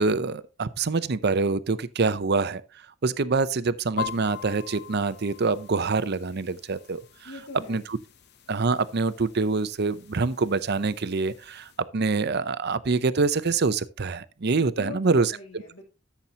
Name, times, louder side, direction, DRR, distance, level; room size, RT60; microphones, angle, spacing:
voice 1, 0.0-2.6 3.0-7.3 7.7-7.8 8.5-15.3, right 4 dB, 50° right, 0.6 m, -25 dB
sound 1, 4.0-11.8, left 9 dB, 50° left, 0.8 m, -43 dB
voice 2, 7.2-7.8 14.8-15.8, left 2 dB, 65° left, 2.2 m, -41 dB
13.5 x 7.1 x 2.9 m
head